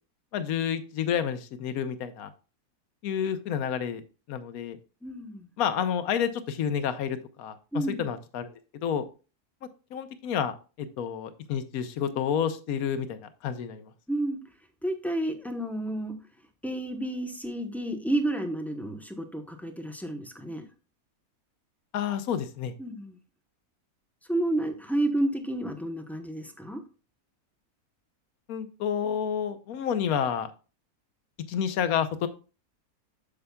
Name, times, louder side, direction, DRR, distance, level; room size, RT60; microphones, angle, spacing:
voice 1, 0.3-2.3 3.0-4.0 4.3-4.8 5.6-8.5 8.8-9.0 9.9-13.9 21.9-22.7 28.5-30.5 31.5-32.3, left 8 dB, 70° left, 11 dB, 1.2 m, -29 dB
voice 2, 5.0-5.5 7.7-8.0 14.1-14.4 14.8-16.1 16.6-20.7 22.8-23.2 24.3-26.8, right 1 dB, ahead, 5 dB, 0.4 m, -30 dB
8.6 x 6.9 x 2.3 m, 0.34 s
omnidirectional pair, 1.6 m